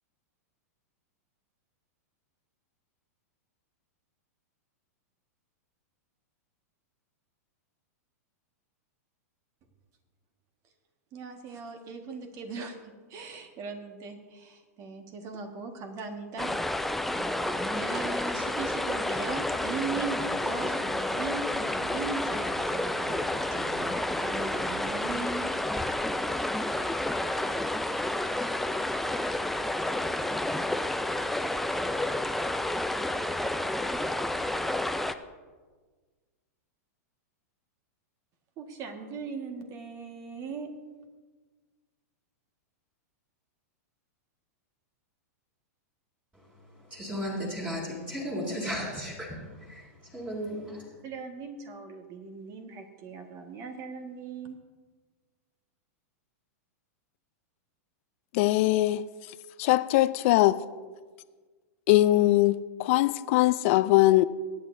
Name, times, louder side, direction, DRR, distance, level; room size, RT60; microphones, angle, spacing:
voice 1, 11.1-16.5 17.1-25.5 38.6-40.7 51.0-54.6, right 4 dB, 40° right, 1.6 m, -39 dB
sound 1, 16.4-35.1, left 1 dB, ahead, 0.4 m, -30 dB
voice 2, 46.9-50.9, equal, 15° right, 3.1 m, -35 dB
voice 3, 58.3-59.0 59.6-60.6 61.9-64.2, left 17 dB, 55° left, 0.5 m, -21 dB
23.0 x 9.4 x 2.7 m
hypercardioid pair, 120°, 9 cm